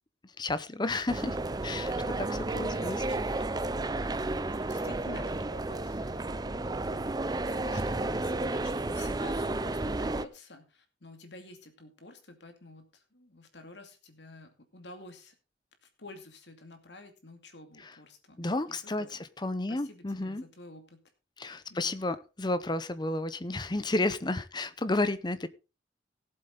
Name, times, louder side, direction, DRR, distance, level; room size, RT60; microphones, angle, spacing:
voice 1, 0.4-1.4 1.6-3.0 18.4-20.4 21.4-25.5, left 2 dB, 25° left, 14 dB, 0.7 m, -32 dB
sound 1, 1.1-10.3, right 2 dB, 20° right, 0.5 m, -32 dB
voice 2, 2.7-4.1 4.4-15.3 15.8-18.4 18.7-19.2 19.7-21.0 21.7-22.0, left 2 dB, 70° left, 6 dB, 2.5 m, -50 dB
17.5 x 7.8 x 3.9 m, 0.30 s
head